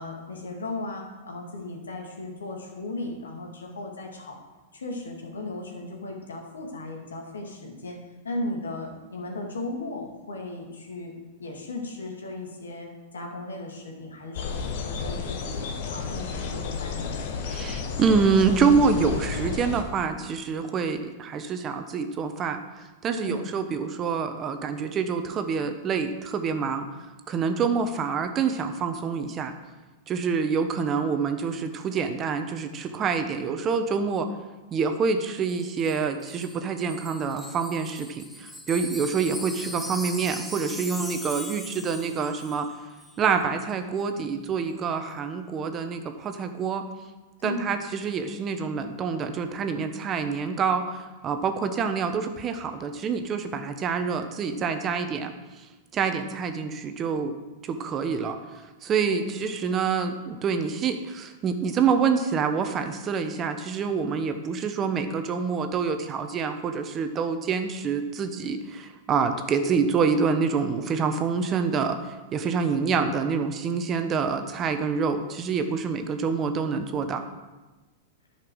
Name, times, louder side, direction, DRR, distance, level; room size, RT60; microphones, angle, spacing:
voice 1, 0.0-4.4 4.7-8.0 8.2-11.1 11.4-15.6 15.9-17.2 23.2-23.5 47.4-47.8 59.1-59.4, left 2 dB, 80° left, 1 dB, 2.3 m, -36 dB
sound 1, 14.3-19.8, left 5 dB, 60° left, 1.3 m, -32 dB
voice 2, 17.5-22.6 23.0-26.9 27.3-29.5 30.1-34.3 34.7-42.7 43.2-46.9 47.4-55.3 55.9-57.4 57.6-77.2, right 5 dB, 30° right, 7 dB, 1.0 m, -26 dB
Wind chime, 35.5-42.7 43.0-43.2, equal, ahead, 1.2 m, -40 dB
10.5 x 5.8 x 6.4 m, 1.2 s
hypercardioid pair, 100°, 0 cm